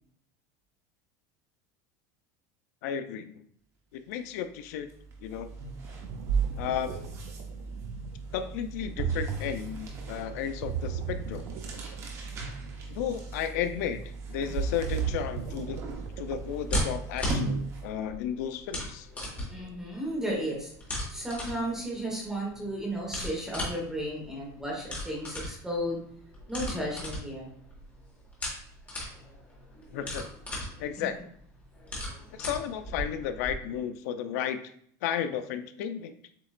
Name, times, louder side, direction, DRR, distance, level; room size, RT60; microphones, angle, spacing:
voice 1, 2.8-3.4 3.9-4.9 5.2-5.5 6.6-6.9 8.3-11.4 12.9-14.0 14.3-15.8 16.2-19.1 29.9-30.2 30.8-31.2 32.3-34.6 35.0-36.1, left 9 dB, 80° left, 10 dB, 0.5 m, -33 dB
sound 1, 4.1-4.3 4.6-18.0, right 3 dB, 35° right, 1.0 m, -40 dB
Ocean, 5.8-16.6, right 7 dB, 65° right, 0.5 m, -35 dB
sound 2, 15.0-33.5, equal, 15° left, 1.6 m, -38 dB
voice 2, 19.5-20.7 21.1-26.0 26.5-27.5 31.0-31.1, equal, 5° right, -3 dB, 1.3 m, -34 dB
7.4 x 2.9 x 2.5 m, 0.64 s
supercardioid pair, 150°, 9 cm